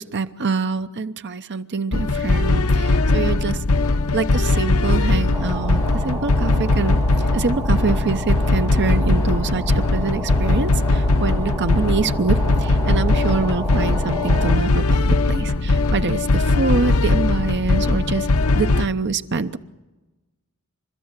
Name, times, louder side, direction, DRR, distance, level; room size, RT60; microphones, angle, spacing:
voice 1, 0.0-3.6 4.1-18.3 18.5-19.6, right 4 dB, 50° right, 11 dB, 0.9 m, -25 dB
sound 1, 1.9-18.9, left 2 dB, 70° left, 0.8 m, -19 dB
sound 2, 5.3-14.5, right 2 dB, 15° right, 3.1 m, -32 dB
28.5 x 13.0 x 9.7 m, 1.1 s
head